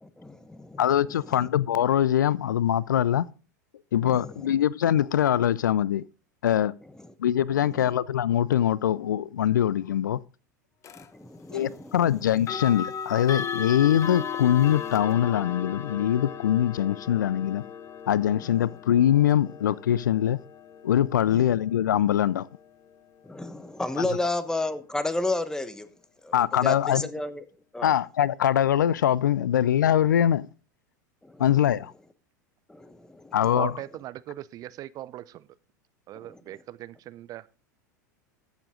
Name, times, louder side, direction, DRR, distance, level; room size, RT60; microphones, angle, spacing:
voice 1, 0.0-0.8 1.3-1.5 4.0-4.5 7.6-7.9 10.9-12.2 21.3-21.5 23.2-25.9 26.2-27.4 27.7-27.9 31.2-31.4 32.7-33.4, left 2 dB, 5° left, 1.2 m, -32 dB
voice 2, 0.8-3.3 3.9-6.0 6.4-6.7 7.2-10.2 11.5-17.6 18.1-20.4 20.8-22.5 24.0-24.1 26.3-27.1 27.8-30.5 31.4-31.9 33.3-33.7, left 10 dB, 80° left, 0.4 m, -23 dB
sound 1, 10.8-11.1 12.4-23.2, left 7 dB, 30° left, 1.0 m, -37 dB
voice 3, 33.5-35.5 36.1-37.6, right 14 dB, 40° right, 0.5 m, -39 dB
14.0 x 7.1 x 3.7 m
hypercardioid pair, 90°, 10 cm